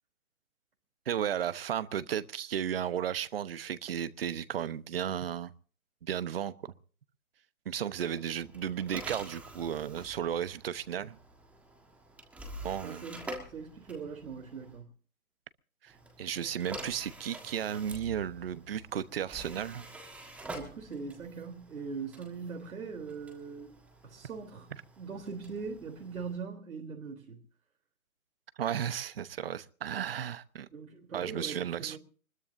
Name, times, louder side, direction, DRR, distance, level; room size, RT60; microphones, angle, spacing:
voice 1, 1.1-5.5 6.0-6.7 7.7-11.2 12.6-13.0 15.8-15.9 16.2-19.9 28.6-30.7 31.1-32.0, right 9 dB, 40° right, 1.0 m, -34 dB
sound 1, 7.9-14.8 15.9-26.4, right 2 dB, 5° right, 1.5 m, -47 dB
voice 2, 12.8-14.9 20.5-23.8 24.0-27.4 30.7-32.0, right 5 dB, 70° right, 3.6 m, -41 dB
24.5 x 21.0 x 2.7 m
hypercardioid pair, 165°, 43 cm